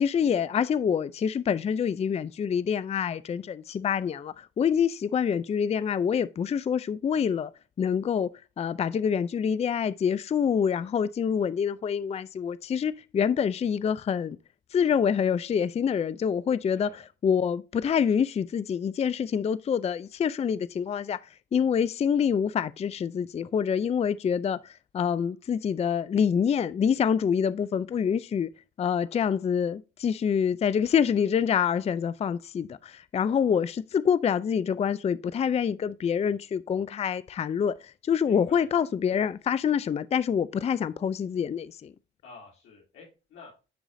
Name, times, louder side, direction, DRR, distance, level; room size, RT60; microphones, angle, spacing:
voice 1, 0.0-7.5 7.8-8.3 8.6-14.4 14.7-21.2 21.5-28.5 28.8-41.9, left 7 dB, 35° left, 0.4 m, -26 dB
voice 2, 16.7-17.0 38.3-38.7 42.2-43.5, left 4 dB, 90° left, 2.9 m, -49 dB
10.0 x 4.8 x 2.6 m
cardioid pair, 90°, 20 cm